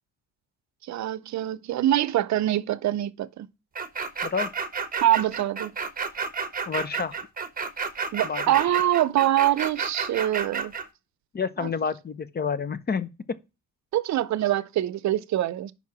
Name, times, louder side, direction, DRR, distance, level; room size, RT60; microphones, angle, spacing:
voice 1, 0.9-3.5 5.0-5.7 8.1-10.7 11.6-11.7 13.9-15.7, right 13 dB, 65° right, 0.6 m, -24 dB
sound 1, 3.8-10.9, right 5 dB, 30° right, 1.0 m, -31 dB
voice 2, 6.7-7.2 8.2-8.4 11.3-13.4, left 6 dB, 35° left, 0.7 m, -29 dB
5.4 x 4.6 x 5.9 m
cardioid pair, 90°, 30 cm